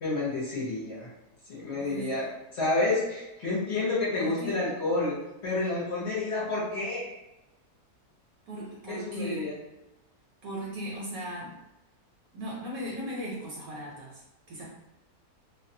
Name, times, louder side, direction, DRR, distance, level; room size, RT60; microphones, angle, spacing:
voice 1, 0.0-1.1 1.5-2.2 2.5-5.1 5.4-7.1 8.9-9.5, left 2 dB, 55° left, -6 dB, 0.9 m, -29 dB
voice 2, 1.7-2.1 4.1-4.6 8.5-9.5 10.4-11.5 12.3-14.2 14.5-14.7, equal, 70° right, -4 dB, 0.9 m, -37 dB
2.5 x 2.1 x 2.6 m, 0.96 s
omnidirectional pair, 1.7 m